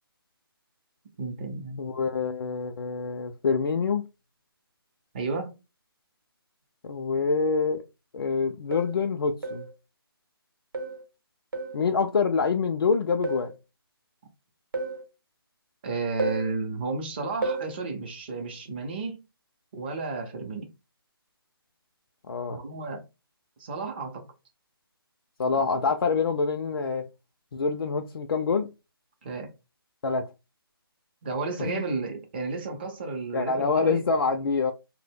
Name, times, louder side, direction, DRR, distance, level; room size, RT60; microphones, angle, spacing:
voice 1, 1.2-1.8 5.1-5.5 15.8-19.2 19.7-20.7 22.5-23.1 23.6-24.3 25.6-25.7 29.2-29.5 31.2-34.0, right 3 dB, 25° right, 0.5 m, -32 dB
voice 2, 1.8-4.0 6.8-7.8 8.1-9.7 11.7-13.5 22.3-22.6 25.4-27.1 27.5-28.7 30.0-30.3 31.6-31.8 33.3-34.7, left 5 dB, 70° left, 0.4 m, -26 dB
sound 1, 7.7-7.8 8.7-9.0 9.4-9.7 10.7-11.0 11.5-11.8 13.2-13.5 14.7-15.0 16.2-16.5 17.4-17.7, right 3 dB, 60° right, 0.7 m, -31 dB
2.1 x 2.0 x 3.4 m
figure-of-eight pair, 160°, 13 cm